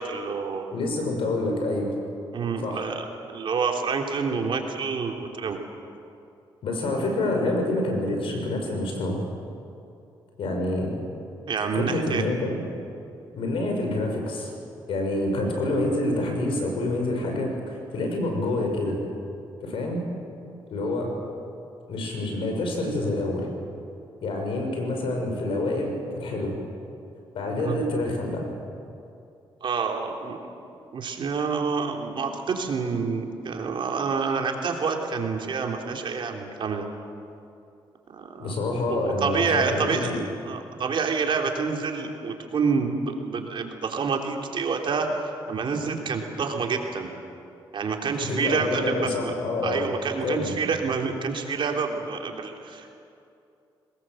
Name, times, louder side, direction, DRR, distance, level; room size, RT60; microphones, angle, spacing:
voice 1, 0.0-0.6 2.3-3.0 3.3-5.6 11.5-12.2 27.6-27.8 29.6-30.5 30.9-36.9 38.1-38.5 38.9-40.1 40.4-47.1 47.7-49.3 49.6-52.9, right 5 dB, 60° right, 2 dB, 3.2 m, -28 dB
voice 2, 0.7-1.9 2.6-2.9 6.6-9.2 10.4-10.9 11.7-12.6 13.3-14.5 14.9-19.0 19.6-20.0 20.7-21.1 21.9-23.5 24.2-26.6 27.3-28.5 38.4-40.2 48.2-49.9 50.2-50.5, left 2 dB, 75° left, 2 dB, 5.9 m, -27 dB
22.5 x 20.0 x 7.8 m, 2.6 s
cardioid pair, 65°, 9 cm